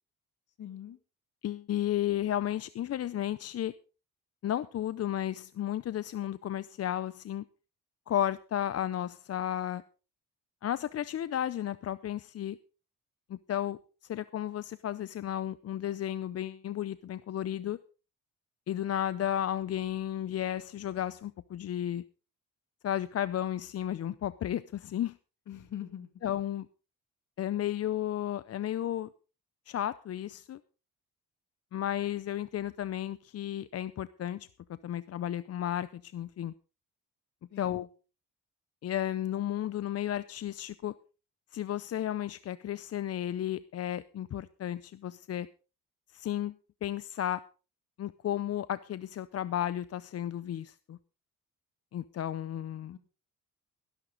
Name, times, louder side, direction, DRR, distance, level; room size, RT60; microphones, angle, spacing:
voice 1, 0.6-1.0 25.5-26.1 37.5-37.9 52.9-53.0, left 10 dB, 65° left, 9 dB, 2.3 m, -42 dB
voice 2, 1.4-3.7 4.4-7.4 8.1-9.8 10.6-12.6 13.3-13.8 14.1-17.8 18.7-22.0 22.8-25.2 26.2-26.7 27.4-29.1 29.7-30.6 31.7-34.5 34.8-36.5 37.6-37.9 38.8-40.9 41.5-45.5 46.1-47.4 48.0-51.0 51.9-53.0, left 11 dB, 45° left, 16 dB, 0.6 m, -33 dB
18.0 x 11.0 x 3.9 m, 0.34 s
cardioid pair, 125°, 34 cm